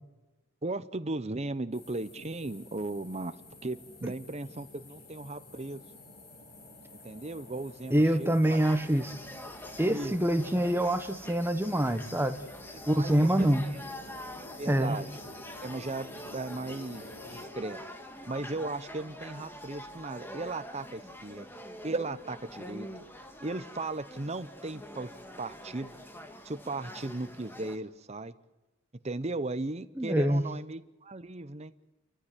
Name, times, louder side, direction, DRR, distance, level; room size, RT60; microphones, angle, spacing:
voice 1, 0.6-5.8 6.9-8.6 9.8-10.1 12.7-13.8 14.6-15.3 15.6-17.8 18.3-21.5 21.8-22.9 23.4-25.1 25.4-25.9 26.4-28.3 29.0-31.7, right 2 dB, 30° right, 12 dB, 0.8 m, -37 dB
sound 1, 1.7-17.5, left 2 dB, 55° left, 6.7 m, -51 dB
voice 2, 7.9-9.1 9.8-12.4 12.9-13.6 14.7-15.0 30.0-30.4, right 1 dB, 10° right, 9 dB, 1.2 m, -25 dB
sound 2, 8.4-27.8, left 1 dB, 10° left, 1.8 m, -45 dB
30.0 x 14.5 x 9.0 m, 1.1 s
head